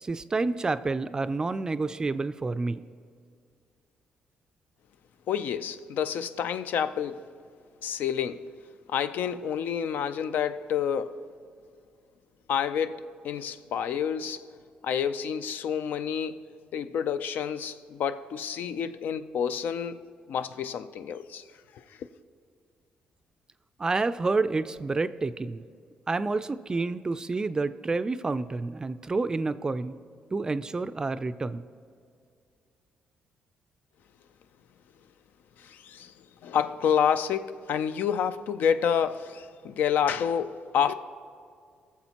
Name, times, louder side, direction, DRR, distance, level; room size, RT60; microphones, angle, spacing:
voice 1, 0.0-2.8 23.8-25.6 26.1-30.0 30.3-31.6, right 3 dB, 25° right, 0.3 m, -29 dB
voice 2, 5.3-7.3 7.8-8.5 8.9-11.2 12.5-14.4 14.8-16.4 16.7-20.0 20.3-21.4 21.7-22.0 35.6-36.1 36.4-40.9, left 8 dB, 70° left, 0.4 m, -29 dB
20.0 x 7.1 x 2.9 m
cardioid pair, 105°, 3 cm